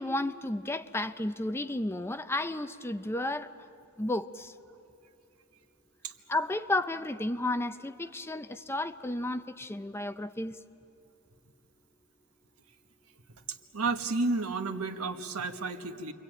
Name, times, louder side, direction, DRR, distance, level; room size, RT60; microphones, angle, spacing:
voice 1, 0.0-3.5 4.0-4.5 6.3-10.6, left 1 dB, 10° left, 10 dB, 0.5 m, -32 dB
voice 2, 13.5-16.1, right 3 dB, 85° right, 7 dB, 1.4 m, -32 dB
29.0 x 23.0 x 8.9 m, 2.6 s
head